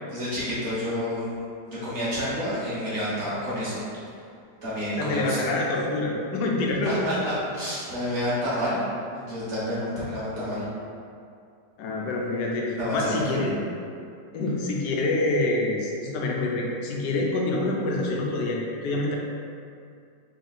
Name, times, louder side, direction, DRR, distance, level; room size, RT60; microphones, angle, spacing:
voice 1, 0.1-1.3 1.7-3.8 4.6-5.4 6.8-8.8 9.1-10.6 12.8-13.6, equal, 45° right, -9 dB, 1.2 m, -29 dB
voice 2, 5.0-7.2 9.8-10.6 11.8-13.5 14.3-19.2, left 2 dB, 80° left, -1 dB, 1.2 m, -27 dB
3.5 x 2.6 x 4.0 m, 2.4 s
omnidirectional pair, 1.8 m